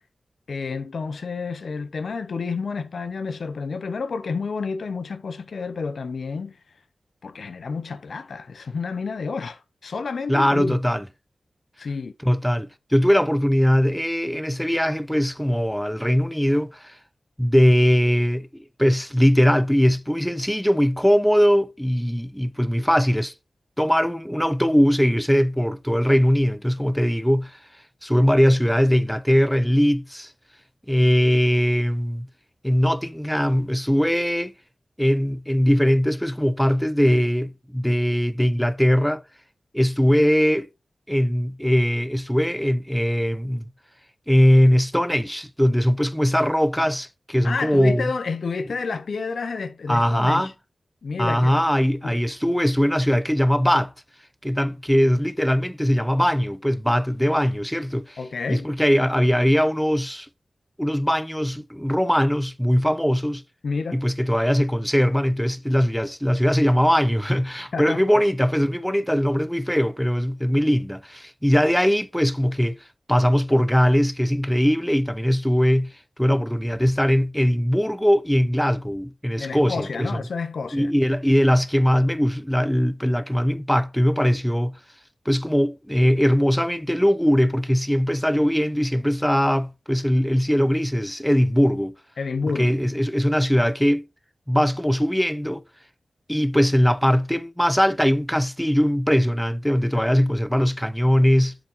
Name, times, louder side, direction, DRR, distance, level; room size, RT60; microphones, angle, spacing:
voice 1, 0.5-6.6 7.2-10.8 11.8-12.1 47.4-50.5 51.0-51.5 52.0-52.2 58.2-58.7 63.6-64.0 67.7-68.0 79.4-80.9 92.2-92.8 99.9-100.1, left 4 dB, 80° left, 0.7 m, -29 dB
voice 2, 10.3-11.0 12.2-16.9 17.4-23.3 23.8-27.6 28.0-30.3 30.9-32.3 32.6-34.5 35.0-39.2 39.7-40.7 41.1-43.6 44.3-48.1 49.9-50.5 51.2-53.9 54.4-58.2 58.5-60.3 60.8-63.4 63.9-72.8 73.1-75.9 76.2-80.2 80.7-84.8 85.3-91.9 92.5-94.0 94.5-95.6 96.3-101.6, equal, 5° left, 0.6 m, -20 dB
7.2 x 7.2 x 3.1 m
cardioid pair, 60°, 0 cm